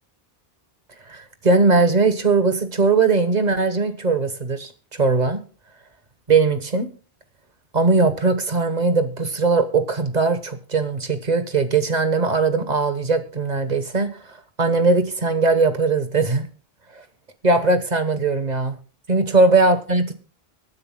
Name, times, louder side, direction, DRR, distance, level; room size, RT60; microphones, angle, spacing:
voice 1, 1.1-5.4 6.3-6.9 7.7-14.1 14.6-16.5 17.4-18.8 19.1-20.1, right 3 dB, 45° right, 9 dB, 1.3 m, -19 dB
24.0 x 9.6 x 2.2 m, 0.38 s
omnidirectional pair, 1.0 m